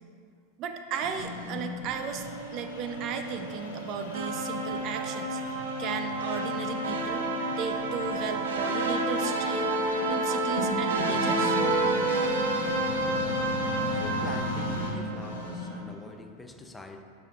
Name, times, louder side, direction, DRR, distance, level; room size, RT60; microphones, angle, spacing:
voice 1, 0.6-2.3 2.5-5.4 5.8-7.3 7.6-9.7 10.1-11.6, right 6 dB, 50° right, 6 dB, 0.5 m, -35 dB
sound 1, 0.9-15.9, left 1 dB, 85° left, 1.2 m, -37 dB
sound 2, 4.1-15.4, right 2 dB, 90° right, 0.7 m, -29 dB
voice 2, 13.9-17.0, left 2 dB, 10° left, 5 dB, 0.4 m, -44 dB
9.8 x 4.8 x 2.4 m, 2.4 s
hypercardioid pair, 110°, 0 cm